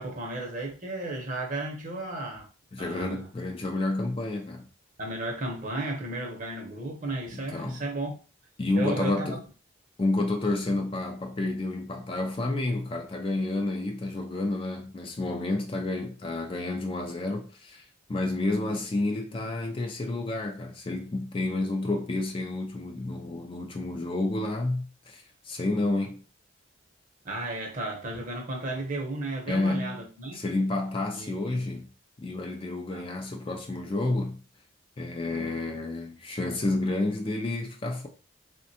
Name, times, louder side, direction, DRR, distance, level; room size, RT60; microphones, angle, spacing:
voice 1, 0.0-2.5 2.8-3.3 5.0-8.2 8.7-9.4 27.2-30.4 31.1-31.5 32.9-33.0, right 2 dB, 40° right, 0.7 m, -34 dB
voice 2, 2.7-4.7 7.3-7.8 8.6-9.4 10.0-17.8 18.1-26.2 29.5-30.0 30.3-31.9 32.2-34.4 35.0-38.1, left 2 dB, 25° left, 0.3 m, -30 dB
3.5 x 2.2 x 2.6 m
head